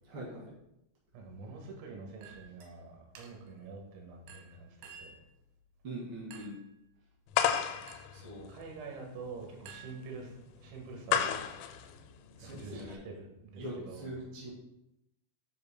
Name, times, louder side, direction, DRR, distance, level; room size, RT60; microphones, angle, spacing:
voice 1, 0.0-0.5 5.8-6.5 8.1-8.5 12.4-13.0 13.6-14.5, right 1 dB, 50° right, -6 dB, 1.7 m, -42 dB
voice 2, 1.1-5.2 8.5-10.3 10.6-11.4 12.4-14.2, right 4 dB, 85° right, 1 dB, 4.2 m, -46 dB
Chink clink, 2.2-2.7 3.2-3.6 4.3-5.3 6.3-6.7 7.9-8.2 9.7-10.5, right 6 dB, 70° right, 2.8 m, -53 dB
sound 1, 7.3-13.0, left 9 dB, 80° left, 3.1 m, -34 dB
9.6 x 7.5 x 2.2 m, 0.84 s
omnidirectional pair, 5.8 m